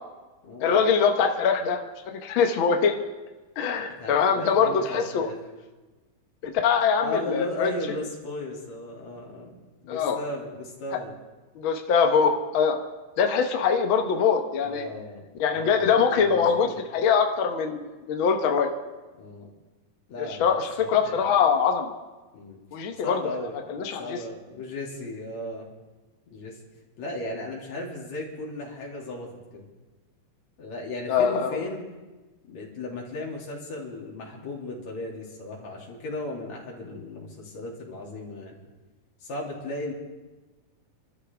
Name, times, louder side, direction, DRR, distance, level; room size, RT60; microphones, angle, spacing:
voice 1, 0.6-1.8 2.1-3.0 3.6-5.3 6.4-7.7 9.9-10.2 11.5-12.8 13.2-14.9 15.4-18.7 20.2-21.9 22.7-23.2 23.7-24.2 31.1-31.6, left 6 dB, 75° left, 4 dB, 1.1 m, -23 dB
voice 2, 3.8-5.4 7.0-9.6 9.8-11.1 14.6-16.8 19.2-19.5 20.1-21.3 22.3-22.6 23.0-23.6 24.0-25.7 26.3-26.6 27.0-29.7 30.6-31.9 32.5-38.5 39.2-39.9, left 2 dB, 55° left, -2 dB, 3.9 m, -36 dB
28.0 x 13.0 x 3.5 m, 1.2 s
omnidirectional pair, 3.9 m